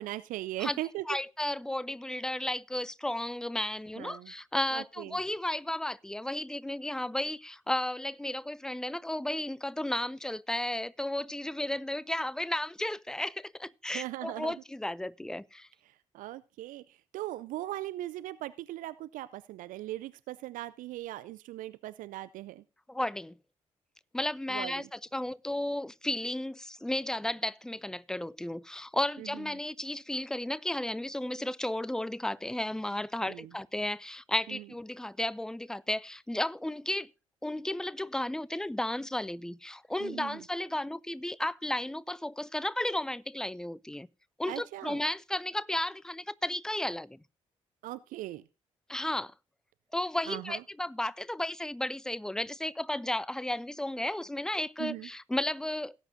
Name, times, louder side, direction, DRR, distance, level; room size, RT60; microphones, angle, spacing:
voice 1, 0.0-1.0 4.0-4.3 4.7-5.2 13.9-14.5 15.9-22.6 24.5-24.9 29.2-29.3 33.3-33.5 34.5-34.6 40.0-40.4 44.5-45.0 47.8-48.4 50.3-50.6 54.8-55.1, right 15 dB, 60° right, 0.4 m, -39 dB
voice 2, 1.1-15.7 22.9-23.4 24.1-37.1 37.4-44.1 44.4-47.2 48.9-49.3 49.9-55.9, left 1 dB, 5° left, 0.4 m, -33 dB
18.0 x 8.2 x 2.7 m
figure-of-eight pair, 40°, 16 cm